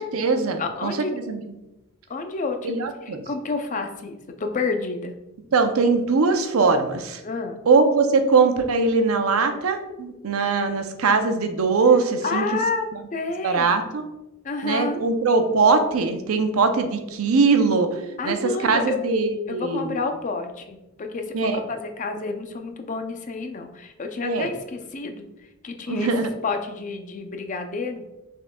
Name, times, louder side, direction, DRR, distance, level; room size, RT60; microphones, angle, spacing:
voice 1, 0.0-1.4 2.6-3.2 5.5-7.2 7.7-12.4 13.4-14.0 14.6-17.9 18.2-19.9 21.3-21.6 24.2-24.5 25.9-26.3, right 4 dB, 80° right, 7 dB, 0.6 m, -21 dB
voice 2, 0.6-1.1 2.1-2.7 3.0-5.1 7.2-7.6 12.2-12.9 13.1-13.7 14.4-15.1 18.2-19.1 19.5-25.3 25.6-26.1 26.4-28.0, left 3 dB, 35° left, 5 dB, 0.5 m, -29 dB
6.1 x 3.7 x 2.2 m, 0.98 s
head